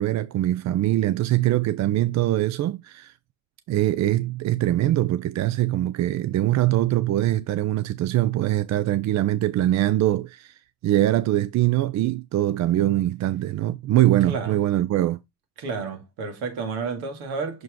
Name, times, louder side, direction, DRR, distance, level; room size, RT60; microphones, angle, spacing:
voice 1, 0.0-3.1 3.7-15.2, right 14 dB, 45° right, 0.5 m, -23 dB
voice 2, 14.3-14.6 15.6-17.6, right 4 dB, 70° right, 2.3 m, -31 dB
6.3 x 4.6 x 3.6 m
hypercardioid pair, 65°, 39 cm